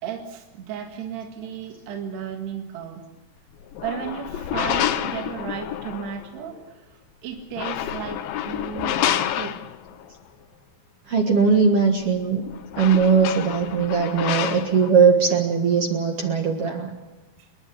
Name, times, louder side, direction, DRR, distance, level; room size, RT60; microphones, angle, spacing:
voice 1, 0.0-3.1 3.8-6.9 7.2-9.6, right 8 dB, 75° right, 3 dB, 3.9 m, -34 dB
sound 1, 3.6-6.3 7.4-10.0 12.0-12.1 12.4-14.9, left 11 dB, 70° left, 2.3 m, -28 dB
voice 2, 11.1-12.4 12.8-16.9, right 5 dB, 50° right, 4 dB, 1.9 m, -19 dB
29.5 x 11.0 x 9.9 m, 1.1 s
omnidirectional pair, 4.8 m